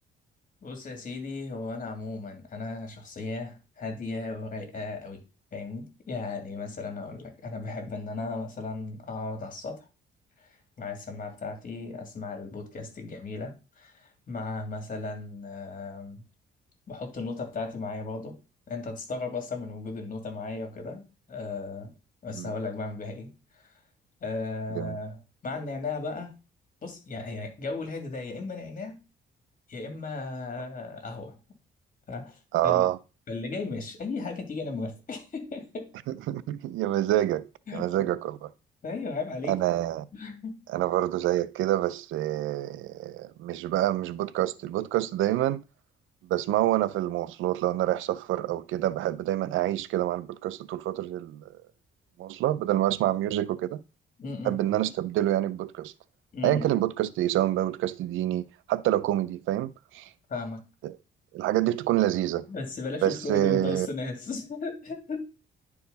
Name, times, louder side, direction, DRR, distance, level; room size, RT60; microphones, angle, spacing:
voice 1, 0.6-5.2 5.5-9.8 10.4-16.2 16.9-18.3 18.7-21.0 21.3-21.9 22.2-23.3 23.5-23.6 24.2-26.3 26.8-29.0 29.7-31.4 32.1-32.9 33.3-35.9 37.7-38.1 38.8-39.6 40.1-40.6 54.2-54.6 56.3-56.7 60.3-60.6 62.5-65.2, left 3 dB, 40° left, 2.9 m, -36 dB
voice 2, 32.5-33.0 36.3-38.5 39.5-40.0 40.7-45.6 46.3-51.5 52.2-53.8 54.4-55.9 56.4-60.1 60.8-60.9 61.3-62.5 63.0-63.9, right 13 dB, 85° right, 0.5 m, -27 dB
10.0 x 4.8 x 4.1 m
cardioid pair, 90°, 20 cm